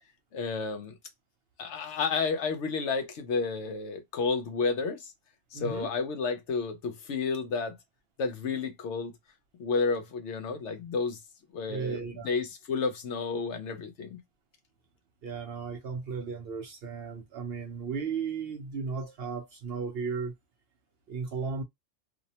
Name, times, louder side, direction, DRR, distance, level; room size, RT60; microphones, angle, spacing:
voice 1, 0.3-1.0 1.6-5.1 5.5-7.8 8.2-9.2 9.6-11.2 11.5-14.2, left 4 dB, 65° left, 0.8 m, -31 dB
voice 2, 5.5-5.9 11.7-12.3 15.2-20.3 21.1-21.6, right 5 dB, 60° right, 0.7 m, -35 dB
2.6 x 2.0 x 2.7 m
omnidirectional pair, 1.4 m